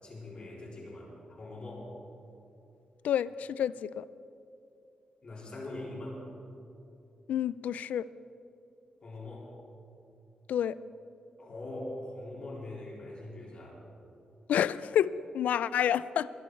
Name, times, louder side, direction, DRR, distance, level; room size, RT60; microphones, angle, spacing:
voice 1, 0.0-1.9 5.2-6.2 9.0-9.5 11.4-13.8, left 2 dB, 40° left, -4 dB, 3.7 m, -42 dB
voice 2, 3.0-4.0 7.3-8.1 10.5-10.8 14.5-16.3, left 9 dB, 90° left, 17 dB, 0.4 m, -29 dB
21.0 x 11.5 x 4.6 m, 2.7 s
wide cardioid pair, 135°, 3 cm